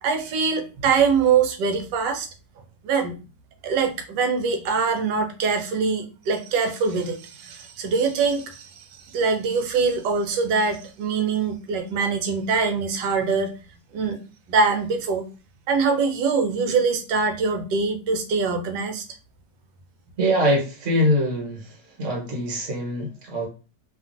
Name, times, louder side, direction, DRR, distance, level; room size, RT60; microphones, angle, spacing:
voice 1, 0.0-2.3 2.8-3.2 3.6-13.5 13.9-14.2 14.5-15.2 15.7-19.0, right 5 dB, 75° right, 5 dB, 1.2 m, -23 dB
voice 2, 20.2-23.5, equal, 50° right, -2 dB, 1.2 m, -23 dB
2.9 x 2.4 x 2.5 m, 0.33 s
omnidirectional pair, 1.9 m